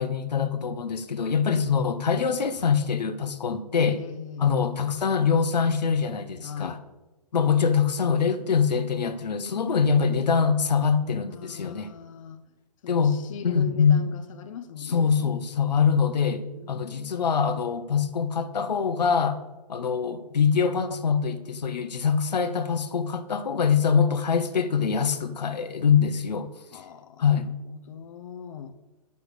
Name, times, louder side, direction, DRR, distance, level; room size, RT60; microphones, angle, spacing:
voice 1, 0.0-4.0 4.4-6.8 7.3-11.9 12.9-13.2 13.4-14.0 14.8-19.4 19.7-26.8 27.2-27.5, left 6 dB, 80° left, 10 dB, 1.1 m, -24 dB
voice 2, 3.8-4.5 6.4-6.8 9.4-9.7 11.3-12.4 12.8-15.3 16.5-17.1 26.7-28.8, left 8 dB, 50° left, 6 dB, 0.8 m, -41 dB
8.4 x 6.9 x 6.6 m, 1.1 s
hypercardioid pair, 145°, 21 cm